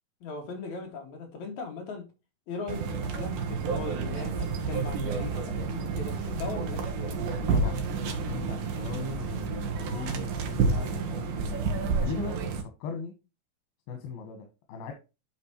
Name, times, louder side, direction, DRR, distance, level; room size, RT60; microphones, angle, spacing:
voice 1, 0.2-2.0 2.5-7.1, left 4 dB, 55° left, 3.1 m, -39 dB
sound 1, 2.7-12.6, right 4 dB, 75° right, 2.9 m, -30 dB
voice 2, 7.5-11.6 12.0-12.4 12.8-13.1 13.9-14.9, left 6 dB, 85° left, 3.2 m, -39 dB
9.5 x 6.0 x 3.0 m
omnidirectional pair, 4.2 m